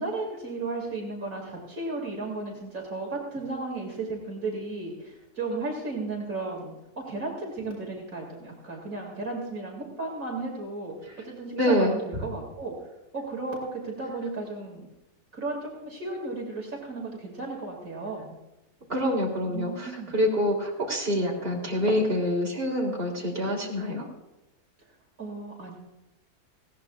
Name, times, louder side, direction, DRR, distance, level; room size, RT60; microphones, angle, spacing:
voice 1, 0.0-10.9 11.2-12.7 13.1-14.9 15.3-18.4 19.5-20.2 25.2-25.7, right 3 dB, 60° right, -2 dB, 2.9 m, -34 dB
voice 2, 11.5-11.9 18.9-24.1, equal, 35° right, -2 dB, 3.4 m, -26 dB
19.5 x 16.5 x 2.4 m, 0.99 s
omnidirectional pair, 1.6 m